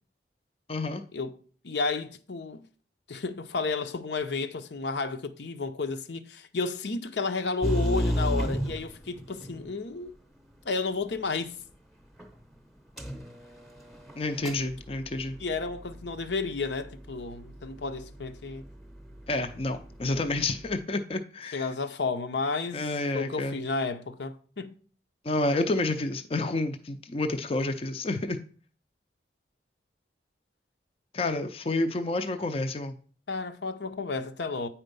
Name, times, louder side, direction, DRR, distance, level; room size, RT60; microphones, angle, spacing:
voice 1, 0.7-1.0 14.2-15.4 19.3-21.7 22.7-23.6 25.2-28.4 31.1-33.0, left 2 dB, 30° left, 0.5 m, -29 dB
voice 2, 1.6-2.6 3.1-10.1 10.6-11.5 15.4-18.6 21.5-22.8 23.1-24.8 33.3-34.7, left 3 dB, 75° left, 0.7 m, -32 dB
sound 1, 7.6-9.7 12.2-12.3 13.0-20.8, equal, ahead, 0.8 m, -35 dB
8.9 x 4.4 x 5.3 m
head